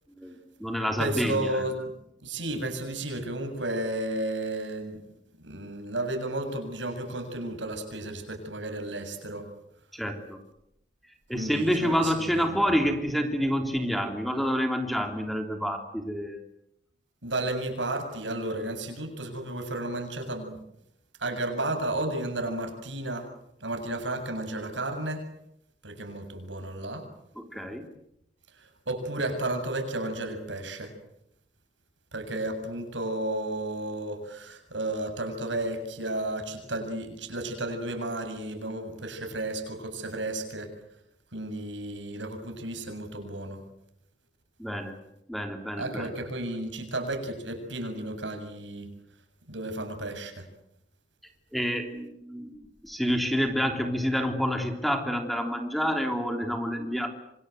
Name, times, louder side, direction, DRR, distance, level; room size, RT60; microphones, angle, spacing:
voice 1, 0.2-1.6 9.9-10.4 11.3-16.4 27.4-27.9 44.6-45.0 45.3-46.1 51.5-57.1, equal, ahead, 4 dB, 3.3 m, -28 dB
voice 2, 1.0-1.8 2.2-5.0 5.4-9.5 11.3-12.5 17.2-20.6 21.2-23.3 23.6-25.3 25.8-27.1 28.9-30.9 32.1-40.7 41.3-43.6 45.8-48.9 49.5-50.5, right 1 dB, 85° right, 6 dB, 7.5 m, -33 dB
27.5 x 26.0 x 8.0 m, 0.78 s
head